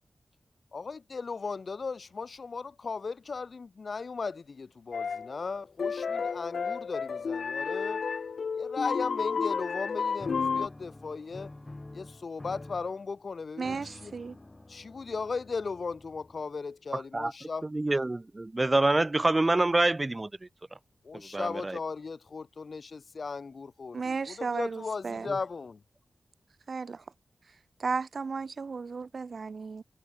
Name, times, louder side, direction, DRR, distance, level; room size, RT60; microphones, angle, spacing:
voice 1, 0.7-8.0 8.6-11.5 11.9-14.1 14.7-17.7 21.0-25.8, left 4 dB, 45° left, 1.6 m, -37 dB
sound 1, 4.9-5.3 5.8-10.7, left 5 dB, 65° left, 0.9 m, -31 dB
sound 2, 10.2-16.7, left 2 dB, 20° left, 2.6 m, -48 dB
voice 2, 13.6-14.4 23.9-25.3 26.7-27.0 27.5-29.8, right 4 dB, 50° right, 0.9 m, -34 dB
voice 3, 16.9-17.3 17.7-20.3 21.1-21.8 25.3-25.4, right 2 dB, 20° right, 0.9 m, -26 dB
wide cardioid pair, 170°, 0 cm